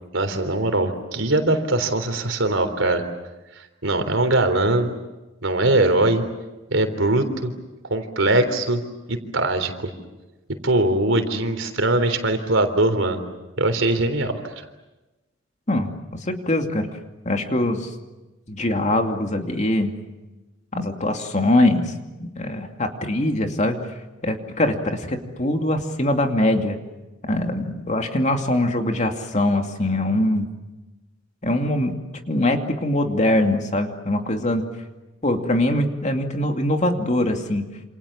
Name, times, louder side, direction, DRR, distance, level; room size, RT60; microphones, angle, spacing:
voice 1, 0.1-3.0 3.8-4.9 5.4-6.3 6.7-7.5 7.9-8.8 9.1-9.7 10.5-13.2 13.6-14.4, right 2 dB, 80° right, 7 dB, 3.6 m, -21 dB
voice 2, 16.3-16.9 17.3-17.9 18.5-19.9 20.7-21.9 22.2-23.8 24.2-26.8 27.2-30.5 31.4-32.0 32.3-34.6 35.2-37.7, left 1 dB, 35° left, 4 dB, 2.6 m, -22 dB
28.0 x 28.0 x 7.3 m, 1.1 s
head